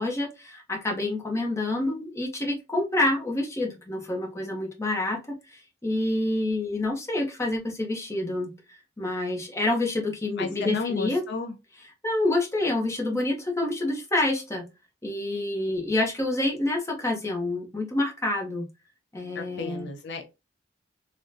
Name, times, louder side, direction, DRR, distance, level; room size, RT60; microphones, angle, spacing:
voice 1, 0.0-11.2 12.0-14.7 15.0-18.6 19.1-19.9, left 2 dB, 15° left, 0.8 m, -28 dB
voice 2, 10.4-11.5 19.3-20.2, left 4 dB, 65° left, 0.5 m, -32 dB
3.6 x 2.2 x 2.6 m
head